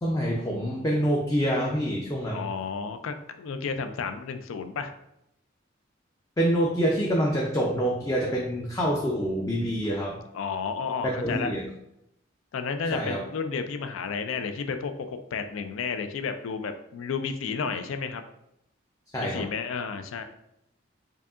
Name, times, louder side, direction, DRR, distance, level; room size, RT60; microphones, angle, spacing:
voice 1, 0.0-2.5 6.4-10.2 11.0-11.6 12.9-13.2 19.1-19.5, equal, 15° left, -2 dB, 0.3 m, -26 dB
voice 2, 2.3-4.9 10.3-11.5 12.5-18.2 19.2-20.2, left 5 dB, 90° left, 8 dB, 0.4 m, -32 dB
4.7 x 2.7 x 2.4 m, 0.80 s
head